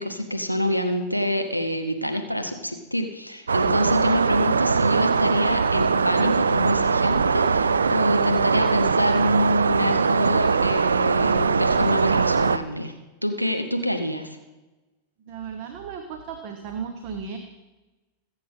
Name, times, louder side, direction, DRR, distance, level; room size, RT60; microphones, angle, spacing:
voice 1, 0.0-12.9 13.2-14.4, equal, 90° right, 7 dB, 1.0 m, -26 dB
sound 1, 3.5-12.6, right 5 dB, 75° right, 0.4 m, -21 dB
voice 2, 15.2-17.4, right 6 dB, 45° right, 7 dB, 1.1 m, -35 dB
22.0 x 8.0 x 3.7 m, 1.1 s
figure-of-eight pair, 90°, 0 cm